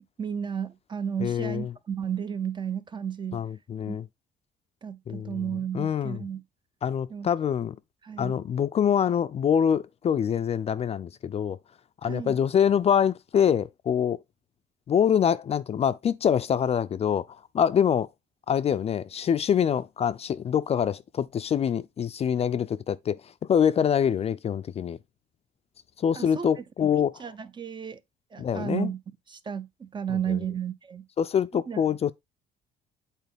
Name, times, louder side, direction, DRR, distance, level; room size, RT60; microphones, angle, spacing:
voice 1, 0.2-3.4 3.9-4.0 4.8-6.4 7.1-7.3 8.0-8.3 12.0-12.4 26.1-26.9 27.2-28.0 28.3-29.0 29.3-31.0 31.5-31.8, right 8 dB, 25° right, 0.6 m, -33 dB
voice 2, 1.2-1.7 3.3-4.1 5.1-5.4 5.7-6.2 6.8-7.8 8.2-11.6 12.0-14.2 14.9-17.3 17.5-18.1 18.5-25.0 26.0-27.2 28.4-28.9 30.3-30.4 31.2-32.1, left 8 dB, 35° left, 0.4 m, -25 dB
8.2 x 4.2 x 3.5 m
cardioid pair, 110°, 17 cm